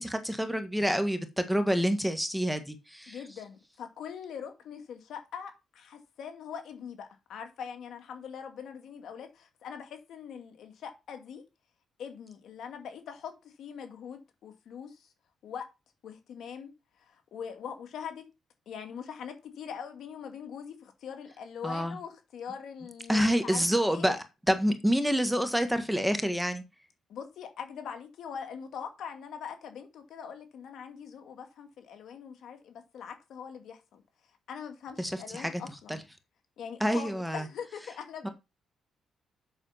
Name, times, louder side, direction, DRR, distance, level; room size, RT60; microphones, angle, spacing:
voice 1, 0.0-3.2 21.6-22.0 23.1-26.6 35.0-35.6 35.9-36.0 36.8-37.4 38.2-38.3, equal, ahead, 1.5 m, -28 dB
voice 2, 3.1-11.4 12.0-15.1 15.4-15.7 16.0-16.7 17.0-18.3 18.7-24.1 27.1-34.0 34.5-36.0 36.6-38.3, left 7 dB, 70° left, 2.3 m, -42 dB
8.0 x 6.5 x 5.7 m
cardioid pair, 90°, 0 cm